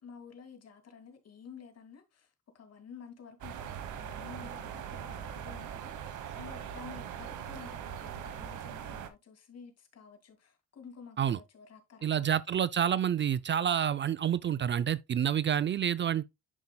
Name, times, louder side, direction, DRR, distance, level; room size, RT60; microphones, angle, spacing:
voice 1, 0.0-12.4, left 6 dB, 55° left, 2.4 m, -51 dB
sound 1, 3.4-9.1, right 9 dB, 85° right, 1.2 m, -41 dB
voice 2, 12.0-16.3, right 9 dB, 40° right, 0.4 m, -28 dB
11.0 x 5.4 x 2.2 m
cardioid pair, 90°, 30 cm